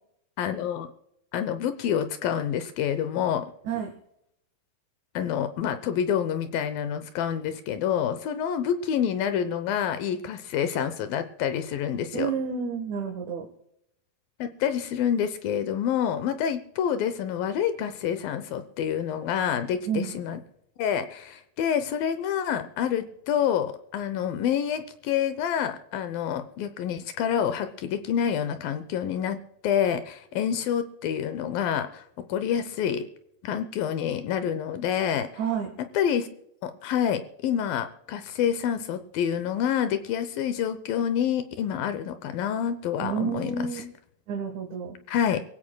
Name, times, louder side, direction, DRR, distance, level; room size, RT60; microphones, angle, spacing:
voice 1, 0.4-0.9 1.3-3.5 5.1-12.3 14.4-20.4 20.8-29.4 29.6-32.0 32.3-33.1 33.4-35.3 35.8-36.3 36.6-43.8 45.1-45.4, left 9 dB, 80° left, 10 dB, 2.5 m, -27 dB
voice 2, 12.1-13.5 19.9-20.1 35.4-35.7 43.0-43.8 44.3-45.0, right 7 dB, 60° right, 3 dB, 2.6 m, -30 dB
24.5 x 16.0 x 2.3 m, 0.77 s
omnidirectional pair, 4.2 m